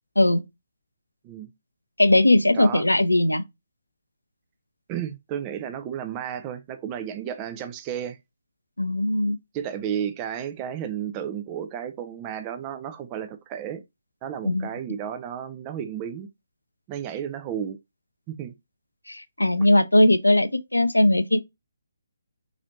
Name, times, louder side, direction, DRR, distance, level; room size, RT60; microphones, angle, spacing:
voice 1, 2.0-3.4 8.8-9.4 14.4-14.7 19.1-21.4, left 1 dB, 80° left, 0.5 m, -19 dB
voice 2, 2.5-2.8 4.9-8.2 9.5-13.8 14.2-16.3 16.9-17.8 18.3-18.5, right 9 dB, 20° right, 0.4 m, -32 dB
4.0 x 3.0 x 2.5 m
figure-of-eight pair, 140°, 0 cm